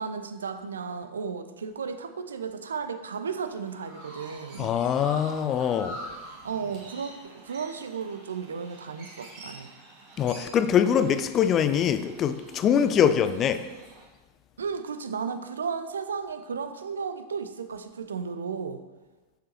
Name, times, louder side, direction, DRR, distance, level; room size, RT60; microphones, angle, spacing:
voice 1, 0.0-4.7 6.4-9.7 14.6-18.8, right 6 dB, 70° right, 9 dB, 0.5 m, -34 dB
Chirp tweet, 3.4-14.0, right 1 dB, 45° right, 1.9 m, -46 dB
voice 2, 4.6-6.0 10.2-13.7, left 8 dB, 30° left, 11 dB, 0.4 m, -23 dB
6.9 x 6.7 x 3.0 m, 1.2 s
figure-of-eight pair, 90°, 0 cm